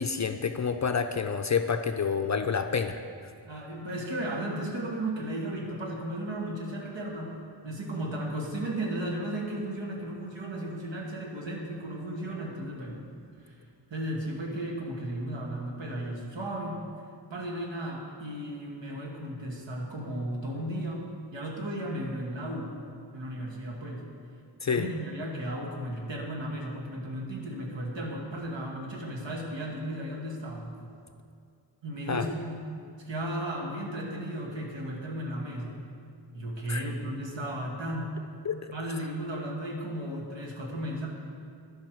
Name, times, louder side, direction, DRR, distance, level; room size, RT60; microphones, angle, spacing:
voice 1, 0.0-3.0 24.6-24.9 32.1-32.3 36.7-36.9 38.5-38.6, left 6 dB, 40° left, 8 dB, 0.4 m, -28 dB
voice 2, 3.4-13.0 13.4-13.5 13.9-16.8 17.3-22.8 23.1-24.0 24.7-30.7 31.8-32.6 33.0-35.8 36.3-38.1 38.7-41.1, right 1 dB, 85° right, -2 dB, 1.4 m, -35 dB
12.5 x 5.6 x 4.5 m, 2.3 s
wide cardioid pair, 45°, 43 cm